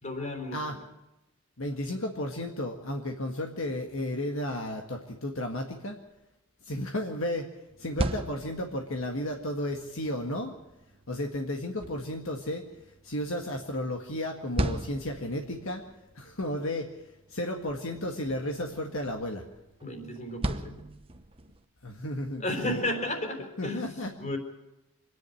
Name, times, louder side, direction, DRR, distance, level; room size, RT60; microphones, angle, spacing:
voice 1, 0.0-0.8 19.8-20.9 22.4-23.9 24.2-24.4, left 1 dB, 35° left, 4 dB, 4.0 m, -33 dB
voice 2, 1.6-6.0 6.6-7.5 7.8-10.5 11.1-12.6 13.0-15.8 16.2-16.9 17.3-19.4 21.8-22.8 23.6-24.1, left 1 dB, 65° left, 3 dB, 1.8 m, -33 dB
sound 1, 7.7-21.6, right 1 dB, 25° right, 1.0 m, -39 dB
26.0 x 10.5 x 10.0 m, 0.99 s
head